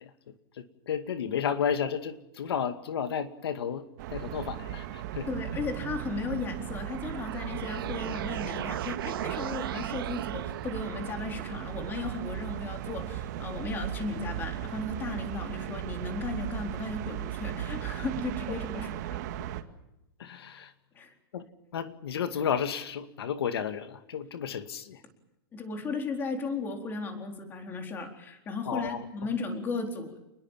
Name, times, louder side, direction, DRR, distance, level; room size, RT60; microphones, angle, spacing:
voice 1, 0.0-3.9 4.1-5.3 20.2-20.7 21.3-21.4 21.7-25.0 28.7-29.3, left 7 dB, 80° left, 9 dB, 2.2 m, -32 dB
sound 1, 4.0-19.6, right 12 dB, 45° right, 2.3 m, -37 dB
voice 2, 5.3-19.6 21.0-21.1 25.5-30.2, left 3 dB, 15° left, 4 dB, 4.1 m, -35 dB
sound 2, 6.5-11.5, right 11 dB, 65° right, 2.1 m, -38 dB
29.0 x 21.0 x 7.5 m, 0.94 s
supercardioid pair, 165°, 13 cm